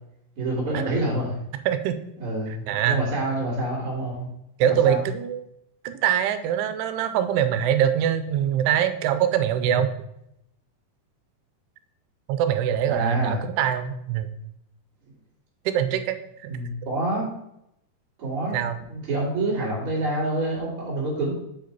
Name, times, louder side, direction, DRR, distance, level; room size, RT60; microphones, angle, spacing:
voice 1, 0.4-1.3 2.2-4.3 4.8-5.0 12.8-13.3 16.5-17.3 18.2-18.6 18.9-21.3, right 2 dB, 40° right, -11 dB, 2.9 m, -27 dB
voice 2, 1.7-2.0 2.5-3.1 4.6-5.4 5.8-9.9 12.3-14.3 15.7-16.2 16.4-16.5 18.5-18.8, right 9 dB, 90° right, 10 dB, 2.7 m, -23 dB
7.3 x 4.9 x 4.6 m, 0.80 s
omnidirectional pair, 4.5 m